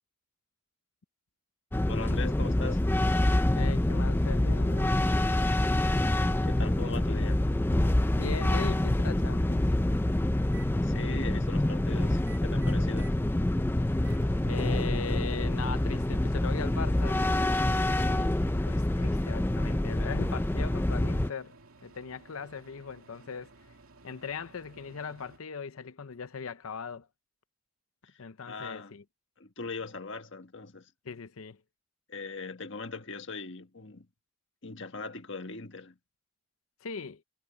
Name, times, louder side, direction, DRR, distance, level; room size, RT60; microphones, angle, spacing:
sound 1, 1.7-21.3, left 1 dB, 10° left, 0.4 m, -26 dB
voice 1, 1.9-2.9 6.4-7.4 10.8-13.1 28.0-28.1 28.4-28.9 29.4-30.9 32.1-34.0 34.6-36.0, left 3 dB, 55° left, 1.6 m, -40 dB
voice 2, 3.5-5.0 8.1-9.7 13.8-13.9 14.4-17.2 17.6-18.4 18.7-21.6 21.8-23.5 24.0-27.1 28.2-29.0 31.0-31.6 36.8-37.2, left 5 dB, 80° left, 0.7 m, -39 dB
Microwave oven, 10.4-10.7 12.1-13.2 13.6-25.4, right 4 dB, 85° right, 2.7 m, -56 dB
head